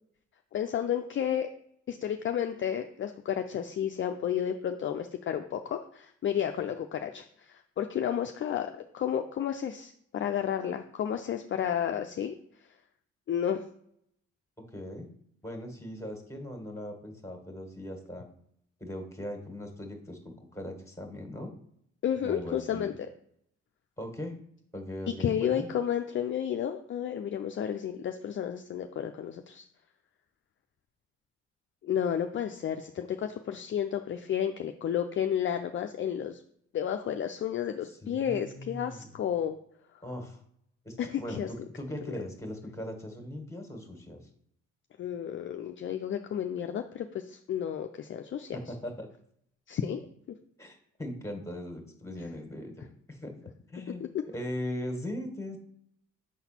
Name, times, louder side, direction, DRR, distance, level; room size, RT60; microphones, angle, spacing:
voice 1, 0.5-1.5 1.9-12.4 13.3-13.6 22.0-23.1 25.2-29.6 31.8-36.4 36.7-39.6 41.0-41.5 42.1-42.2 45.0-48.6 49.7-50.1, left 9 dB, 40° left, 6 dB, 0.4 m, -32 dB
voice 2, 14.6-15.1 15.4-18.3 18.8-21.5 22.2-22.9 24.0-24.4 24.7-25.7 37.9-39.1 40.0-40.4 40.8-44.2 48.5-49.1 50.6-53.4 53.7-54.0 54.3-55.6, left 1 dB, 10° left, 4 dB, 1.7 m, -39 dB
5.9 x 4.0 x 4.4 m, 0.68 s
supercardioid pair, 65°, 30 cm